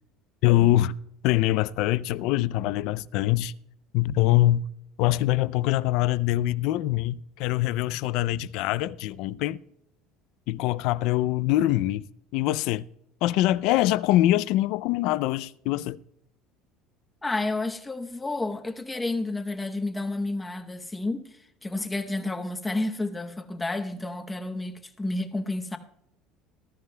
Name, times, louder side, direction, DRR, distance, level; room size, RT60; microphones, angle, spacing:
voice 1, 0.4-1.0 1.2-3.5 3.9-4.6 5.0-9.6 10.5-12.1 12.3-12.8 13.2-16.0, left 15 dB, 60° left, 0.3 m, -24 dB
voice 2, 17.2-25.8, left 2 dB, 10° left, 0.8 m, -31 dB
20.0 x 13.0 x 2.2 m
cardioid pair, 165°, 0 cm